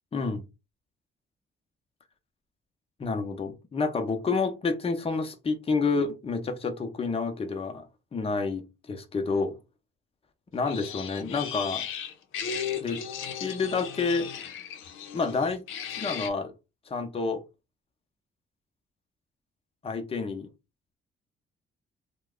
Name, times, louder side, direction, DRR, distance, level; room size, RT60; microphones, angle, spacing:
voice 1, 0.1-0.4 3.0-7.9 8.1-9.5 10.5-11.8 12.8-13.0 13.4-14.3 15.1-15.6 16.0-16.5 16.9-17.4 19.8-20.5, left 4 dB, 30° left, 0.7 m, -29 dB
sound 1, 10.7-16.3, left 8 dB, 85° left, 0.6 m, -36 dB
2.8 x 2.2 x 3.6 m
cardioid pair, 90°, 20 cm